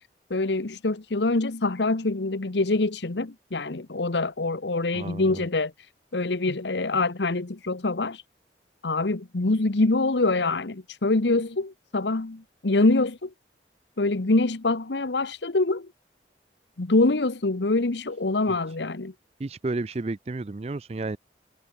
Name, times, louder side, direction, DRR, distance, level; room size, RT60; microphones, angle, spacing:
voice 1, 0.3-5.7 6.1-8.2 8.8-13.3 14.0-15.9 16.8-19.1, left 2 dB, 85° left, 1.1 m, -25 dB
voice 2, 4.9-5.4 19.4-21.2, right 2 dB, 35° right, 0.4 m, -32 dB
head